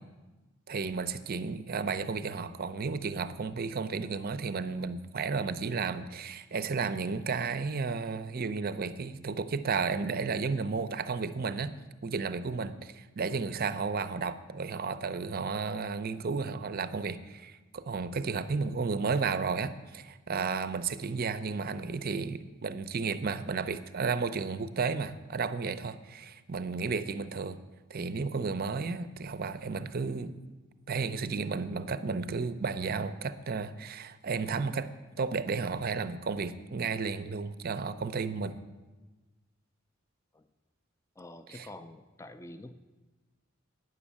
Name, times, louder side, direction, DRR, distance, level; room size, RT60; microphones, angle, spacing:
voice 1, 0.7-11.7 12.0-27.6 27.9-30.3 30.9-34.9 35.2-38.6 41.5-41.7, right 4 dB, 45° right, 13 dB, 0.5 m, -33 dB
voice 2, 41.2-42.7, left 1 dB, 15° left, 7 dB, 0.4 m, -48 dB
9.5 x 6.3 x 8.4 m, 1.2 s
head